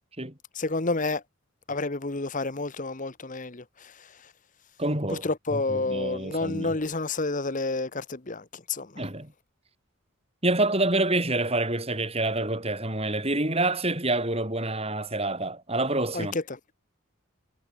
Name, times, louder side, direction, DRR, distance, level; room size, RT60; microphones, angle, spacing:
voice 1, 0.5-1.2 1.7-3.9 5.1-9.0 16.1-16.7, left 3 dB, 35° left, 1.1 m, -30 dB
voice 2, 4.8-6.8 9.0-9.3 10.4-16.4, right 2 dB, 30° right, 7.3 m, -27 dB
head